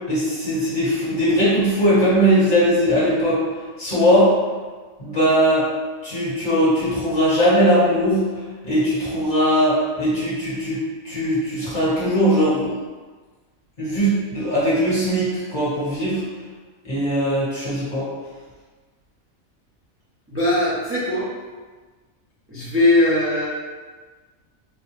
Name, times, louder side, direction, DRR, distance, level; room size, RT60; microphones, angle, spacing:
voice 1, 0.1-3.4 3.8-4.3 5.0-5.7 6.0-8.2 8.6-10.8 11.0-12.8 13.8-16.2 16.8-18.1, equal, 35° left, -10 dB, 1.5 m, -19 dB
voice 2, 20.3-21.3 22.5-23.5, left 2 dB, 15° right, -10 dB, 0.5 m, -19 dB
4.0 x 2.2 x 3.1 m, 1.4 s
omnidirectional pair, 1.4 m